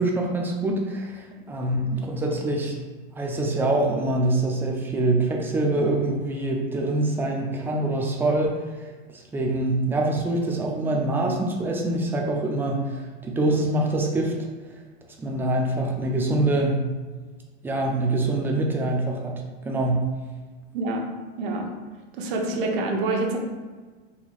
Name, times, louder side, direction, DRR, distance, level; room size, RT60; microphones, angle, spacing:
voice 1, 0.0-2.8 3.1-8.5 9.1-14.3 15.2-16.9 17.6-20.1, right 2 dB, 5° right, 0 dB, 0.3 m, -25 dB
voice 2, 20.7-21.1 21.4-21.7 22.2-23.4, right 2 dB, 60° right, 2 dB, 0.7 m, -26 dB
4.2 x 2.8 x 2.4 m, 1.4 s
hypercardioid pair, 115°, 30 cm